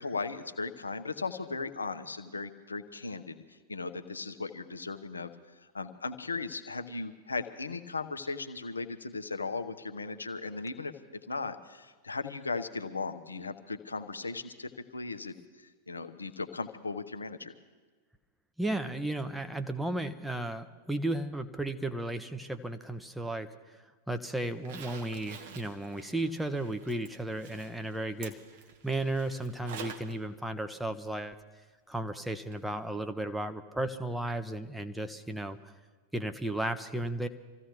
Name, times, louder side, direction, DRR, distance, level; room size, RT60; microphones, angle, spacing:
voice 1, 0.0-5.3 5.7-10.9 11.3-17.5, left 4 dB, 75° left, 9 dB, 0.9 m, -37 dB
voice 2, 18.6-28.4 28.8-31.3 31.9-35.7 36.1-37.3, right 1 dB, 5° right, 8 dB, 0.9 m, -34 dB
Zipper (clothing), 24.5-30.1 30.5-30.6 32.5-32.6 33.0-33.1, right 6 dB, 55° right, 1.4 m, -48 dB
26.0 x 15.5 x 3.1 m, 1.4 s
figure-of-eight pair, 90°, 0 cm